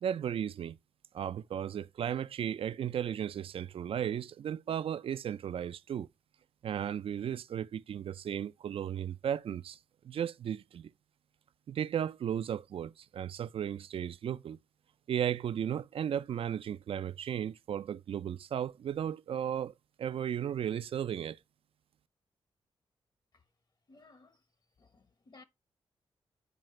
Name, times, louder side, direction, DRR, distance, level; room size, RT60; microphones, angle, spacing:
voice 1, 0.0-0.8 1.1-6.1 6.6-9.8 10.0-10.9 11.7-14.6 15.1-21.4, right 9 dB, 65° right, 0.4 m, -35 dB
voice 2, 23.9-24.4 24.8-25.4, left 3 dB, 45° left, 1.1 m, -59 dB
9.2 x 4.9 x 3.2 m
cardioid pair, 70°, 10 cm